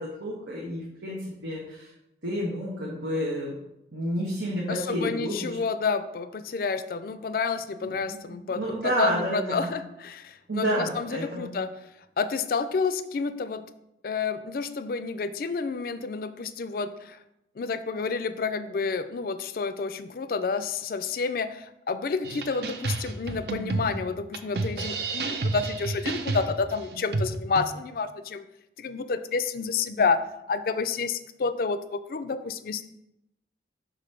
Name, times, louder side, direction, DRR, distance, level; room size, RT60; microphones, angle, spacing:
voice 1, 0.0-1.9 2.2-3.6 3.9-5.5 7.8-9.7 10.5-11.5, equal, 90° right, -5 dB, 1.2 m, -30 dB
voice 2, 4.7-11.7 12.2-13.6 14.0-17.2 17.6-28.4 28.8-30.2 30.5-32.9, left 4 dB, 55° left, 12 dB, 0.4 m, -29 dB
sound 1, 22.2-27.7, right 3 dB, 60° right, 0.5 m, -31 dB
5.0 x 3.8 x 5.7 m, 0.86 s
head